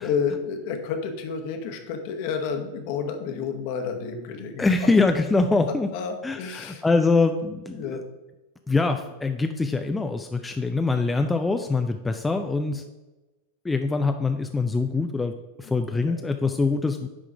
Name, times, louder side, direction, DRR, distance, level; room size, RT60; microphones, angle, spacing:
voice 1, 0.0-4.6 5.9-6.8 7.7-8.0 15.6-15.7 16.0-16.2, left 6 dB, 45° left, 5 dB, 1.1 m, -30 dB
voice 2, 4.6-5.9 6.2-8.0 8.7-12.8 13.6-17.1, left 3 dB, 10° left, 6 dB, 0.4 m, -24 dB
10.0 x 3.7 x 4.8 m, 1.1 s
figure-of-eight pair, 90°, 0 cm